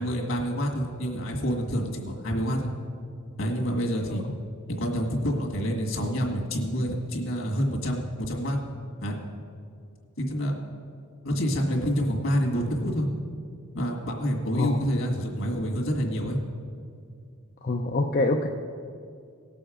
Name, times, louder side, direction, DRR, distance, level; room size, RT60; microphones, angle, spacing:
voice 1, 0.0-2.7 3.4-4.2 4.7-8.6 9.0-9.2 10.2-10.5 11.2-13.1 13.7-16.4, equal, 65° left, 1 dB, 1.9 m, -27 dB
voice 2, 17.6-18.5, left 2 dB, 40° left, 2 dB, 0.5 m, -25 dB
18.0 x 7.0 x 5.0 m, 2.3 s
head